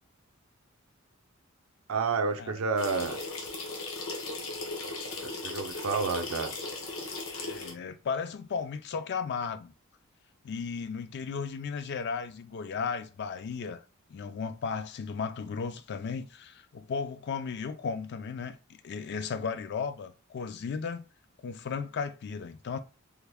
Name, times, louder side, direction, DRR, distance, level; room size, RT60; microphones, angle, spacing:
voice 1, 1.9-3.2 5.2-6.5, right 4 dB, 75° right, 0.5 m, -30 dB
sound 1, 2.8-7.7, left 3 dB, 70° left, 0.9 m, -37 dB
voice 2, 7.3-9.7 10.4-13.8 14.1-18.6 18.8-21.1 21.4-22.8, left 5 dB, 50° left, 0.4 m, -35 dB
3.4 x 2.1 x 3.4 m
head